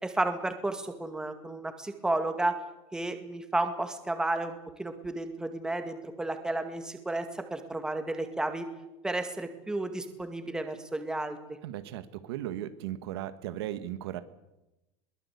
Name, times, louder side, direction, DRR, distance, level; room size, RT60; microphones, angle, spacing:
voice 1, 0.0-2.5 2.9-7.3 7.5-8.6 9.0-11.4, right 2 dB, 5° right, 7 dB, 2.1 m, -32 dB
voice 2, 11.6-14.2, right 12 dB, 85° right, 11 dB, 1.7 m, -36 dB
22.5 x 18.5 x 8.4 m, 0.98 s
supercardioid pair, 155°, 13 cm